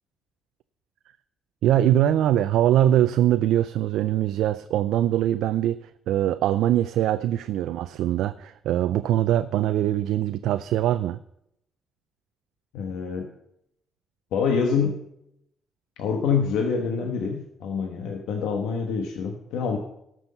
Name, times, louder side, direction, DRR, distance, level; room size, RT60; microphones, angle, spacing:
voice 1, 1.6-11.2, right 12 dB, 85° right, 11 dB, 0.3 m, -22 dB
voice 2, 12.7-13.3 14.3-15.0 16.0-19.8, left 6 dB, 90° left, 3 dB, 1.1 m, -26 dB
13.5 x 6.2 x 5.3 m, 0.78 s
cardioid pair, 90°, 0 cm